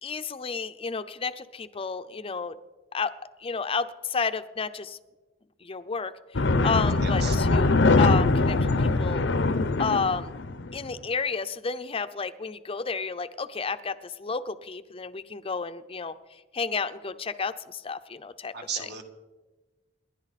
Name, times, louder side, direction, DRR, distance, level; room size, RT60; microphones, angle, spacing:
voice 1, 0.0-2.5 2.9-3.1 3.4-5.0 5.6-7.7 8.0-9.2 9.8-10.3 10.7-16.2 16.5-18.9, left 5 dB, 30° left, 11 dB, 0.6 m, -31 dB
sound 1, 6.3-10.9, left 3 dB, 70° left, 0.7 m, -22 dB
voice 2, 7.0-7.4 18.5-19.0, right 6 dB, 60° right, 4 dB, 1.8 m, -35 dB
28.0 x 11.0 x 4.2 m, 1.2 s
head